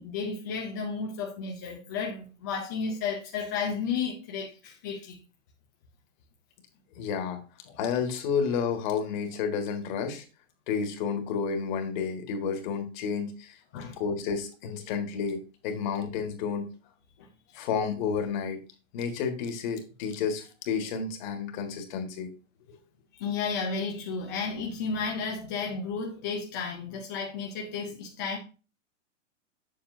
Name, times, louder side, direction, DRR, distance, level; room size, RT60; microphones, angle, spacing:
voice 1, 0.0-5.2 7.7-7.8 13.7-14.0 17.2-17.3 23.1-28.4, left 5 dB, 15° left, 0.3 m, -33 dB
voice 2, 7.0-7.4 7.8-10.2 10.7-13.6 14.0-16.7 17.5-18.6 18.9-22.3, left 6 dB, 40° left, 1.6 m, -31 dB
7.1 x 7.0 x 2.6 m
hypercardioid pair, 155°, 38 cm